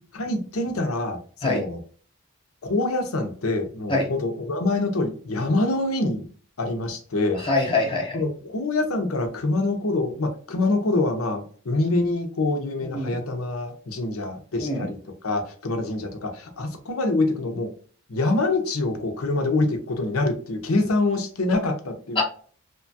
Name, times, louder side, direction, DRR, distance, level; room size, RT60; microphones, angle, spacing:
voice 1, 0.1-1.8 2.6-6.3 6.6-7.4 8.1-15.0 15.2-17.7 18.1-22.2, left 2 dB, 90° left, 5 dB, 0.7 m, -25 dB
voice 2, 7.5-8.2 12.9-13.1 14.6-14.9 22.2-22.3, left 2 dB, 25° left, 0 dB, 0.8 m, -23 dB
2.9 x 2.3 x 2.6 m, 0.43 s
head